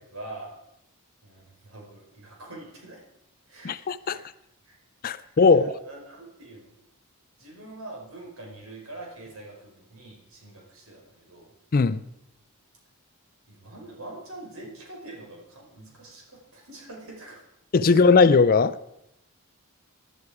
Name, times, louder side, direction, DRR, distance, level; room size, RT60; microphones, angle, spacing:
voice 1, 0.1-0.5 1.2-3.0 3.4-4.2 4.6-4.8 5.1-6.7 7.4-11.5 13.5-17.4 17.8-18.0, right 2 dB, 70° right, 4.8 m, -44 dB
voice 2, 3.6-4.2 5.0-5.6 11.7-12.0 17.7-18.8, left 4 dB, 40° left, 0.4 m, -18 dB
16.5 x 11.0 x 4.9 m
head